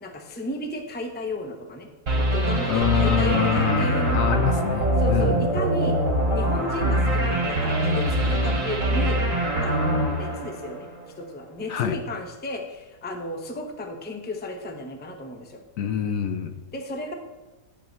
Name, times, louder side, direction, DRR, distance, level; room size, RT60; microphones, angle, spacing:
voice 1, 0.0-4.4 5.0-6.0 6.3-9.2 9.6-10.9 11.2-15.6 16.7-17.1, left 1 dB, 10° left, 4 dB, 0.6 m, -33 dB
sound 1, 2.1-11.1, right 1 dB, 50° right, 2.7 m, -23 dB
voice 2, 2.7-5.5 11.7-12.0 15.8-16.5, left 9 dB, 70° left, 8 dB, 0.9 m, -25 dB
11.0 x 8.1 x 3.1 m, 1.2 s
omnidirectional pair, 1.7 m